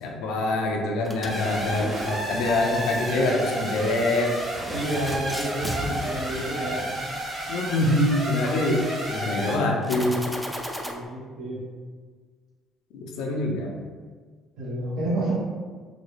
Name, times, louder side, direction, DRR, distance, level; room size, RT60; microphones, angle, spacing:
voice 1, 0.0-4.4 7.5-10.2 12.9-13.7, left 2 dB, 90° left, 0 dB, 0.5 m, -25 dB
sound 1, 1.0-7.2 9.8-10.9, equal, ahead, 0.3 m, -37 dB
sound 2, 1.3-9.6, right 1 dB, 20° right, 0.8 m, -32 dB
voice 2, 4.7-7.0 10.8-11.6 14.6-15.3, right 1 dB, 85° right, -8 dB, 1.2 m, -30 dB
3.7 x 2.0 x 3.2 m, 1.5 s
cardioid pair, 125°, 0 cm